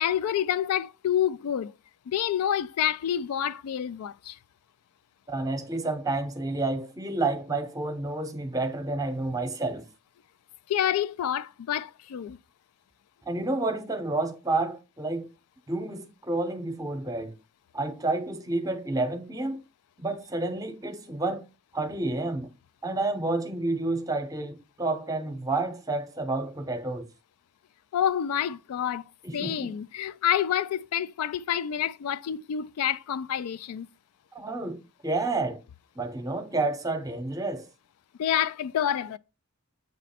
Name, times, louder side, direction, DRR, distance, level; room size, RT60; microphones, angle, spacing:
voice 1, 0.0-1.7 2.1-4.4 10.7-12.4 27.9-29.0 29.3-33.9 38.2-39.2, left 10 dB, 80° left, 0.3 m, -28 dB
voice 2, 5.3-9.8 13.3-15.3 15.7-17.3 17.7-19.6 20.0-21.4 21.7-22.5 22.8-27.0 29.2-29.7 34.3-35.6 36.0-37.7, right 2 dB, 15° right, 0.7 m, -30 dB
7.9 x 3.1 x 4.2 m
head